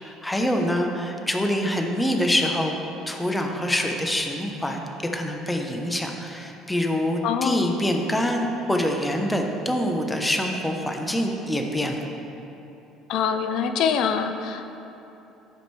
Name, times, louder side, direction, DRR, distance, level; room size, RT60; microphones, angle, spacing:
voice 1, 0.0-2.8 3.1-4.8 5.1-12.0, equal, 10° left, 2 dB, 0.9 m, -25 dB
voice 2, 7.2-7.7 13.1-14.8, left 7 dB, 65° left, 8 dB, 0.6 m, -25 dB
14.5 x 5.1 x 3.4 m, 2.9 s
cardioid pair, 105°, 0 cm